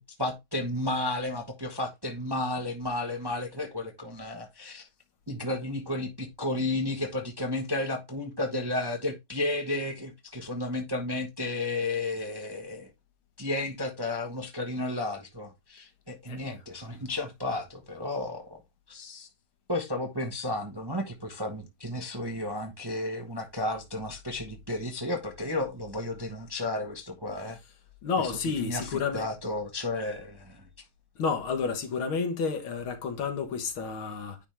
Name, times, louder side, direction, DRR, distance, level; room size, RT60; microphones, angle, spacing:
voice 1, 0.0-4.9 5.3-12.9 13.4-18.6 18.9-19.3 19.7-27.6 28.2-28.3 28.6-30.6, left 2 dB, 15° right, 0.9 m, -33 dB
voice 2, 28.0-29.2 31.2-34.4, left 5 dB, 70° left, 2.2 m, -30 dB
9.9 x 3.6 x 4.3 m
omnidirectional pair, 2.4 m